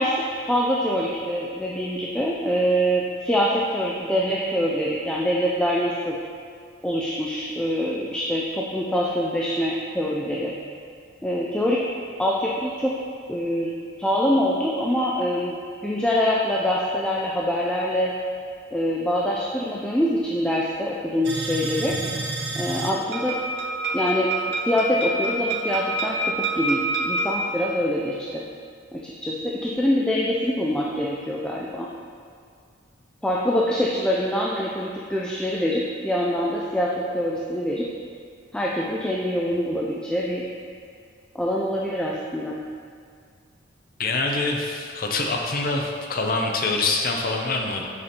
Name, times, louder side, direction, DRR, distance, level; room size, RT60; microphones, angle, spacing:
voice 1, 0.0-6.2 6.8-10.5 11.2-11.8 12.2-12.9 13.3-15.5 15.8-18.1 18.7-22.0 22.6-23.4 23.9-28.5 28.9-31.9 33.2-37.9 38.5-40.4 41.3-42.6, equal, 5° left, -4 dB, 0.3 m, -24 dB
sound 1, 21.2-27.4, right 2 dB, 60° right, 0.6 m, -27 dB
voice 2, 21.8-22.2 39.5-39.6 44.0-47.8, left 3 dB, 50° left, 2 dB, 0.6 m, -25 dB
6.7 x 4.9 x 2.9 m, 2.2 s
head